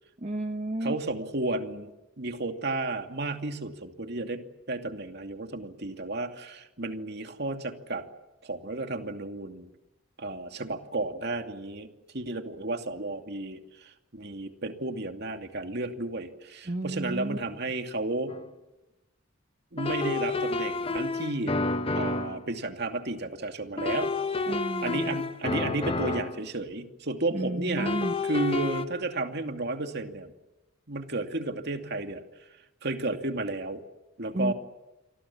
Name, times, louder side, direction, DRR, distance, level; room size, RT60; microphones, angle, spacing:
voice 1, 0.2-1.0 16.7-17.4 24.5-25.2 27.3-28.1 34.3-34.5, right 1 dB, 35° right, 6 dB, 1.1 m, -31 dB
voice 2, 0.8-1.9 2.2-8.1 8.4-9.7 10.2-11.9 12.1-18.4 19.7-21.6 21.9-24.2 24.8-30.3 30.9-32.2 32.8-33.8 34.2-34.5, right 2 dB, 55° right, 6 dB, 2.6 m, -33 dB
sound 1, 18.3-18.4 19.8-22.4 23.8-26.5 27.8-28.8, left 3 dB, 30° left, 1.1 m, -30 dB
29.0 x 24.0 x 7.3 m, 1.0 s
head